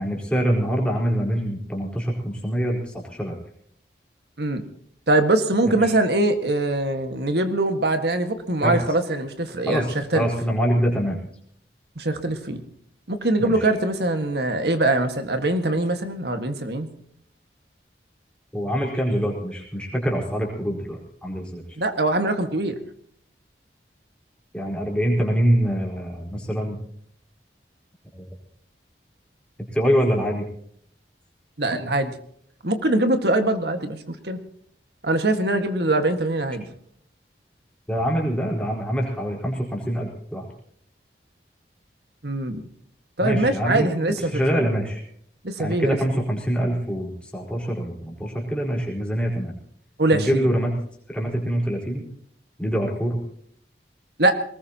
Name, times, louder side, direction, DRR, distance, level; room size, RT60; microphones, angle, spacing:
voice 1, 0.0-3.4 5.7-5.9 8.6-8.8 9.6-11.2 13.4-13.7 18.5-21.6 24.5-26.8 28.1-28.3 29.7-30.5 37.9-40.5 43.2-43.9 44.3-45.0 45.6-49.5 50.1-50.8 51.1-52.0 52.6-53.2, equal, 5° left, -2 dB, 4.4 m, -25 dB
voice 2, 5.1-10.3 12.0-12.6 13.1-16.9 21.8-22.8 31.6-32.1 32.6-34.4 35.0-36.6 42.2-42.6 43.2-44.4 45.4-46.2 50.0-50.5 54.2-54.4, right 2 dB, 70° right, 7 dB, 1.8 m, -23 dB
22.0 x 20.0 x 3.0 m, 0.64 s
head